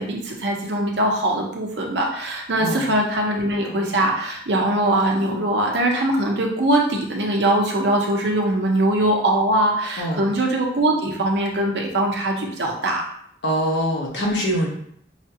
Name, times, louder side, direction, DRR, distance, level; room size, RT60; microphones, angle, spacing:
voice 1, 0.0-13.0, right 1 dB, 70° right, 0 dB, 0.8 m, -21 dB
voice 2, 13.4-14.7, equal, 85° left, -1 dB, 1.0 m, -23 dB
5.0 x 2.4 x 2.8 m, 0.66 s
head